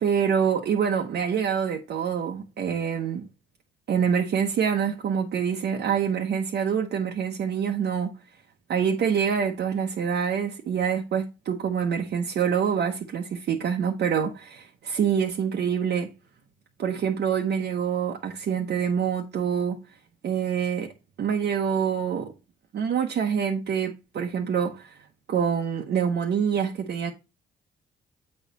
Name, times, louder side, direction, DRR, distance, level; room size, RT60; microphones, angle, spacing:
voice 1, 0.0-3.3 3.9-8.1 8.7-16.1 16.8-19.8 20.2-20.9 21.2-22.3 22.7-25.0 25.3-27.1, right 7 dB, 60° right, 0.9 m, -26 dB
7.7 x 4.2 x 4.0 m
cardioid pair, 90°, 20 cm